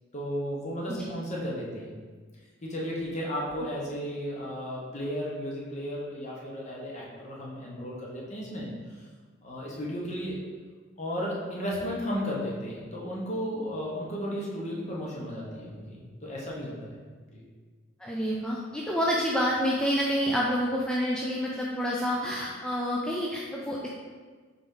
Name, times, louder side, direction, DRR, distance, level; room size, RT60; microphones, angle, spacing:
voice 1, 0.1-1.9 2.6-8.7 9.4-10.4 11.0-17.0 17.3-17.4, equal, 35° left, -4 dB, 1.0 m, -34 dB
voice 2, 18.0-23.9, equal, 5° left, -5 dB, 0.3 m, -28 dB
3.9 x 3.4 x 3.6 m, 1.5 s
head